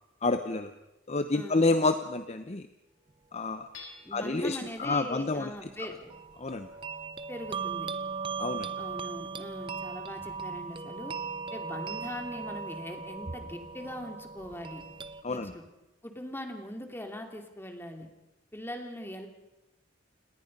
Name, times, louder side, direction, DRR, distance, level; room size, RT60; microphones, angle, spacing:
voice 1, 0.2-0.7 1.1-2.7 3.3-3.7 4.1-5.7 6.4-6.7 8.4-8.7 15.2-15.5, left 3 dB, 35° left, 9 dB, 0.8 m, -29 dB
voice 2, 1.3-1.7 4.0-6.1 7.3-7.9 8.8-11.2 11.5-14.8 15.3-15.6 16.0-18.1 18.5-19.3, left 1 dB, 10° left, 4 dB, 2.8 m, -41 dB
Hammer / Chink clink, 3.7-4.5, left 4 dB, 80° left, 7.0 m, -48 dB
sound 1, 6.1-15.2, right 5 dB, 25° right, 0.7 m, -38 dB
29.0 x 19.0 x 5.4 m, 0.97 s
head